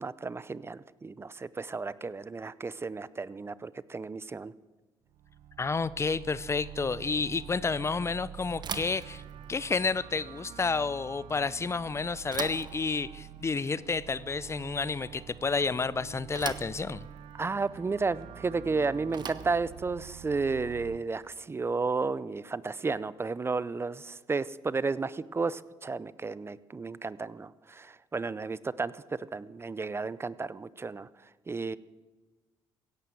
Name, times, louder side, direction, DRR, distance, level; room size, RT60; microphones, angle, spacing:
voice 1, 0.0-4.5 17.4-29.0 29.3-31.1 31.5-31.8, right 4 dB, 25° right, 18 dB, 0.6 m, -33 dB
sound 1, 5.1-21.0, right 10 dB, 75° right, 0.7 m, -47 dB
voice 2, 5.6-9.2 9.5-17.1, left 4 dB, 30° left, 19 dB, 0.6 m, -30 dB
Bicycle / Thump thud, 8.6-21.7, right 7 dB, 50° right, 1.1 m, -45 dB
16.5 x 11.0 x 7.6 m, 1.2 s
supercardioid pair, 70°, 9 cm